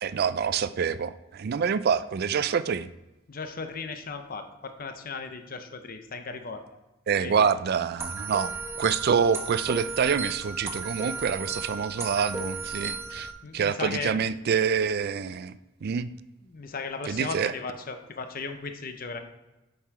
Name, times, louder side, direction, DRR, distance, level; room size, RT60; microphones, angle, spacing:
voice 1, 0.0-2.9 7.1-8.5 8.8-13.3 13.5-15.5 15.8-16.1 17.1-17.5, right 6 dB, 50° right, 14 dB, 0.4 m, -26 dB
voice 2, 3.3-6.6 7.2-7.5 13.4-14.1 16.5-19.2, left 4 dB, 45° left, 7 dB, 0.7 m, -36 dB
sound 1, 8.0-13.3, right 3 dB, 15° right, 0.9 m, -35 dB
7.2 x 5.7 x 4.8 m, 1.0 s
head